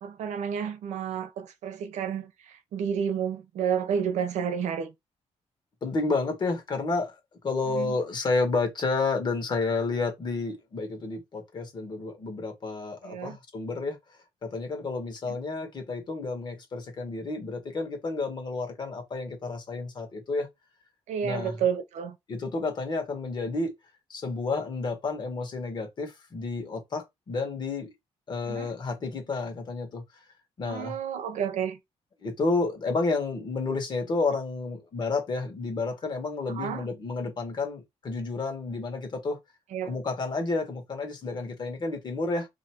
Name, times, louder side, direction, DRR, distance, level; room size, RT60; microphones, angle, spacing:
voice 1, 0.0-4.9 7.7-7.9 13.0-13.4 15.3-15.4 21.1-22.2 28.4-28.7 30.6-31.8 36.5-36.8 39.7-40.0, right 7 dB, 85° right, 0.8 m, -31 dB
voice 2, 5.8-7.2 7.4-14.0 14.4-20.5 21.2-21.5 22.3-23.7 24.1-27.9 28.3-30.0 30.6-31.0 32.2-39.4 39.8-42.5, left 3 dB, 40° left, 1.4 m, -30 dB
2.9 x 2.6 x 4.4 m
cardioid pair, 165°, 12 cm